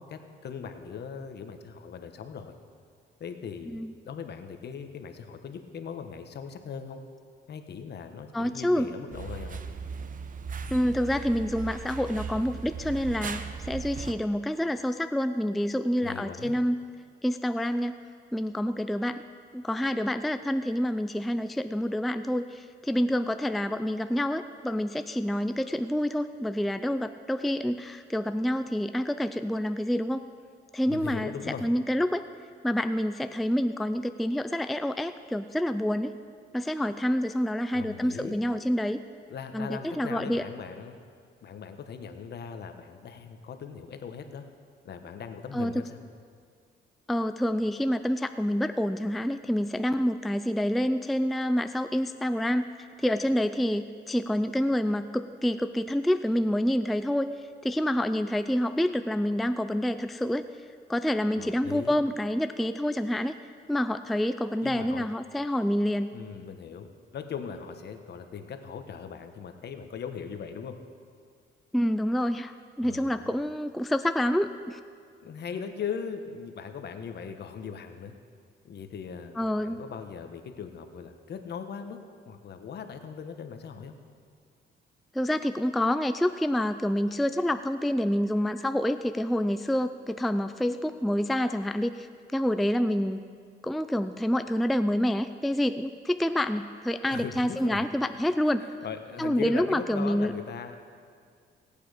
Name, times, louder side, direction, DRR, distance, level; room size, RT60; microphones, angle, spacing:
voice 1, 0.0-2.5 3.2-7.0 7.5-9.6 16.0-16.6 30.9-31.7 37.7-38.4 39.3-41.0 41.4-44.4 44.8-46.0 61.4-62.0 64.6-65.1 66.1-70.8 72.8-73.3 75.2-78.1 78.6-82.0 82.3-84.0 97.1-97.8 98.4-98.5 98.8-100.8, left 6 dB, 55° left, 7 dB, 1.2 m, -39 dB
voice 2, 8.3-8.9 10.7-16.8 17.2-18.0 18.3-19.2 19.5-30.2 30.7-31.3 31.6-32.2 32.6-36.1 36.5-39.0 39.5-40.4 45.5-45.9 47.1-52.7 53.0-57.3 57.6-60.4 60.9-63.3 63.7-66.1 71.7-74.8 79.4-79.8 85.1-92.1 92.3-93.2 93.6-98.6 99.2-100.3, equal, ahead, 10 dB, 0.4 m, -27 dB
sound 1, 9.1-14.1, right 5 dB, 45° right, 0.7 m, -37 dB
17.5 x 8.7 x 5.1 m, 2.1 s
cardioid pair, 90°, 20 cm